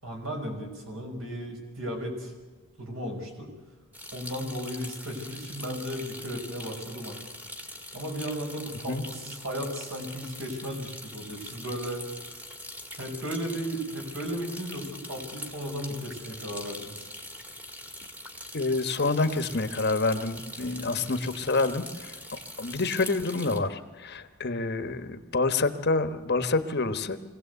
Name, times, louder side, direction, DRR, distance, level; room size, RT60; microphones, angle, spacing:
voice 1, 0.0-2.3 2.8-3.5 4.1-7.2 7.9-12.0 13.0-17.1 20.9-21.1, equal, 65° right, 2 dB, 5.6 m, -35 dB
sound 1, 3.9-23.6, left 1 dB, 5° right, 1.7 m, -43 dB
voice 2, 18.5-27.2, left 3 dB, 45° left, 10 dB, 1.2 m, -28 dB
23.5 x 17.0 x 8.1 m, 1.3 s
head